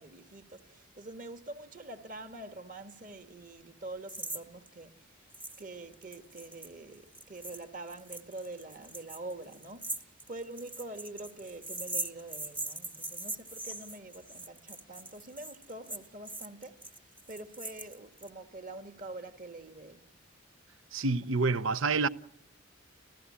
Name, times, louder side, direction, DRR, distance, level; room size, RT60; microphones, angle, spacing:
voice 1, 0.0-5.1 5.6-20.0, right 2 dB, 40° right, 1.8 m, -45 dB
sound 1, 4.1-4.4 4.7-4.8 5.3-5.6 5.9-18.3, right 2 dB, 10° right, 0.9 m, -41 dB
voice 2, 20.9-22.1, right 4 dB, 75° right, 0.8 m, -28 dB
27.5 x 15.5 x 8.6 m
head